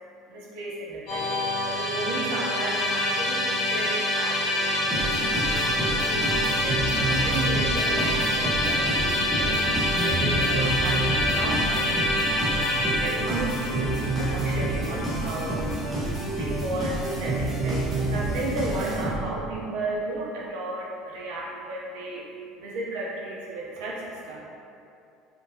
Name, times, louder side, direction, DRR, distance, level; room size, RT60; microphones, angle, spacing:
voice 1, 0.3-24.4, right 2 dB, 80° right, -5 dB, 0.5 m, -34 dB
Musical instrument, 1.1-16.2, left 1 dB, 45° left, 0.7 m, -26 dB
sound 1, 4.9-19.5, right 2 dB, 10° right, 0.7 m, -28 dB
3.5 x 2.4 x 2.6 m, 2.6 s
cardioid pair, 170°, 0 cm